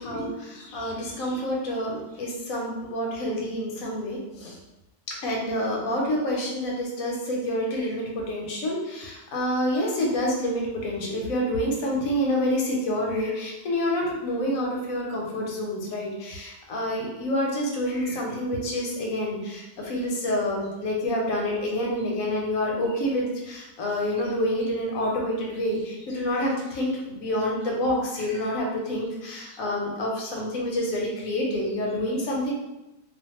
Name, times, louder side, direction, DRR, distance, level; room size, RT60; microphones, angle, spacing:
voice 1, 0.0-4.6 5.1-32.5, left 1 dB, 70° left, -1 dB, 1.0 m, -28 dB
2.5 x 2.5 x 2.8 m, 0.97 s
omnidirectional pair, 1.6 m